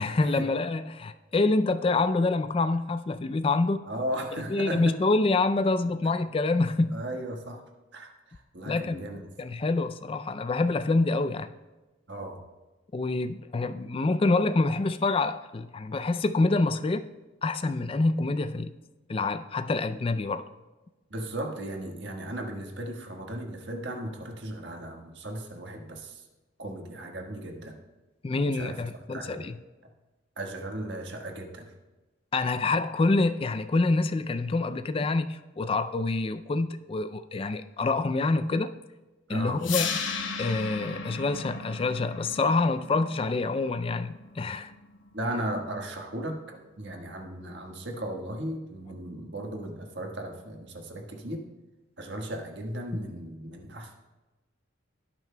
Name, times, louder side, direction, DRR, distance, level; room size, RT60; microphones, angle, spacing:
voice 1, 0.0-3.8 4.3-7.0 8.7-9.0 9.4-11.5 12.9-17.1 17.4-18.7 19.1-20.5 28.2-29.6 32.3-38.7 39.3-39.9 40.4-44.7, left 3 dB, 30° left, 10 dB, 0.3 m, -26 dB
voice 2, 3.8-4.9 6.9-7.6 7.9-9.3 12.1-12.4 21.1-26.2 26.6-27.7 28.4-28.8 29.1-29.4 30.4-31.7 39.3-39.6 45.1-51.4 52.0-54.0, right 1 dB, 60° right, 2 dB, 1.4 m, -36 dB
sound 1, 39.6-45.6, left 5 dB, 70° left, 0.9 m, -36 dB
17.5 x 9.2 x 2.2 m, 1.1 s
head